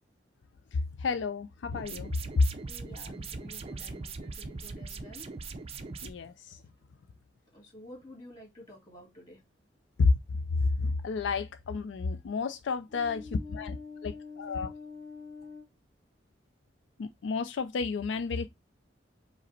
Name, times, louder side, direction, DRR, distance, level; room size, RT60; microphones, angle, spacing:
voice 1, 0.7-2.4 6.0-6.6 10.0-13.8 14.0-14.7 17.0-18.5, left 4 dB, 80° left, 0.4 m, -30 dB
sound 1, 1.7-6.1, right 4 dB, 35° right, 0.4 m, -40 dB
voice 2, 2.6-5.3 7.5-9.4 12.9-15.7, left 3 dB, 20° left, 2.1 m, -48 dB
5.0 x 2.1 x 4.0 m
head